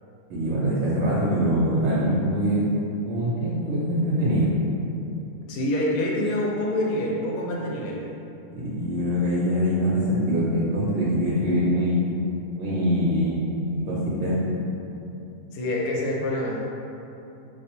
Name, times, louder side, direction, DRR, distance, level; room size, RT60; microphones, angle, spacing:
voice 1, 0.3-2.6 3.0-4.5 8.6-12.1 12.6-13.6 13.9-14.4, equal, 70° right, -8 dB, 1.0 m, -23 dB
voice 2, 5.5-8.0 15.5-16.6, left 1 dB, 85° left, -3 dB, 1.1 m, -26 dB
3.3 x 2.6 x 2.9 m, 2.8 s
omnidirectional pair, 1.5 m